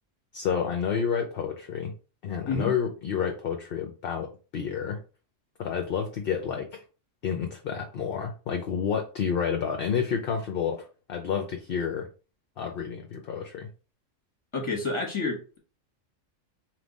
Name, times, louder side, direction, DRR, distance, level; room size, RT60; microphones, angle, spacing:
voice 1, 0.3-1.9 2.2-5.0 5.6-6.8 7.2-12.1 12.6-13.7, left 7 dB, 55° left, 4 dB, 0.7 m, -30 dB
voice 2, 14.5-15.6, left 3 dB, 25° left, 0 dB, 1.1 m, -29 dB
3.6 x 2.9 x 3.9 m, 0.35 s
omnidirectional pair, 1.4 m